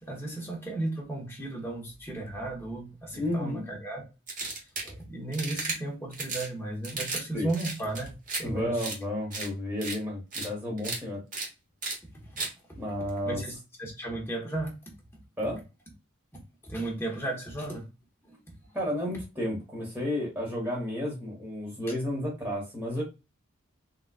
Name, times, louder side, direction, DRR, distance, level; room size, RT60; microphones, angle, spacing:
voice 1, 0.0-4.1 4.4-8.8 12.2-12.4 13.2-14.7 16.6-17.9 18.2-18.4, right 2 dB, 10° left, 1.0 m, -35 dB
voice 2, 3.1-3.7 7.3-7.5 8.4-11.2 12.7-13.4 15.4-15.6 18.7-23.0, left 1 dB, 10° right, 1.1 m, -32 dB
sound 1, 4.3-4.9 5.3-5.8 6.1-6.5 6.8-7.2 7.5-8.4 8.8-9.0 9.3-9.5 9.8-10.0 10.3-10.5 10.8-11.0 11.3-11.5 11.8-12.0 12.4-12.5, right 3 dB, 40° right, 1.0 m, -34 dB
3.9 x 2.4 x 2.3 m
head